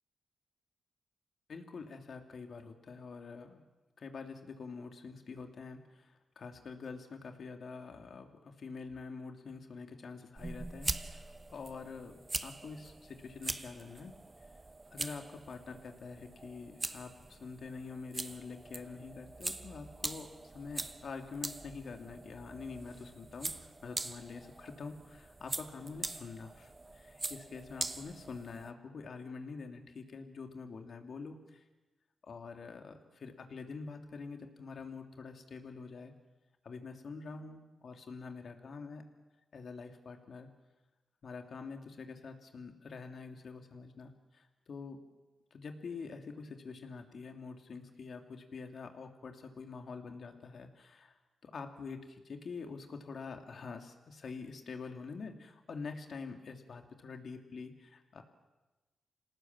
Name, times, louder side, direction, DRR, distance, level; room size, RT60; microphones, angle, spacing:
voice 1, 1.5-3.6 4.0-14.2 14.9-31.6 32.2-36.1 36.6-39.1 39.5-40.5 41.2-45.0 45.5-51.2 51.4-58.2, left 4 dB, 65° left, 4 dB, 2.8 m, -46 dB
sound 1, 10.4-28.7, right 2 dB, 30° right, 1.0 m, -43 dB
27.5 x 18.5 x 7.6 m, 1.1 s
cardioid pair, 60°, 0 cm